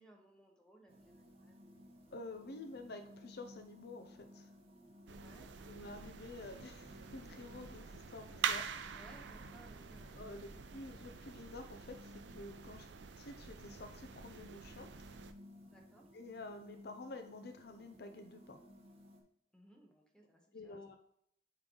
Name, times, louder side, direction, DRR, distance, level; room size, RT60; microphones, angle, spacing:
voice 1, 0.0-1.6 5.1-5.5 8.9-10.6 12.7-12.9 15.6-16.1 19.5-21.0, right 1 dB, 5° left, 1 dB, 1.0 m, -62 dB
sound 1, 0.9-19.2, left 1 dB, 35° right, 1.1 m, -59 dB
voice 2, 2.1-4.5 5.7-8.7 10.1-12.9 13.2-14.9 16.1-18.6 20.5-21.0, left 2 dB, 65° left, 7 dB, 0.6 m, -50 dB
sound 2, 5.1-15.3, right 7 dB, 75° right, 0.4 m, -45 dB
sound 3, 6.3-11.8, equal, 30° left, 0.9 m, -64 dB
8.6 x 3.3 x 3.8 m, 0.68 s
head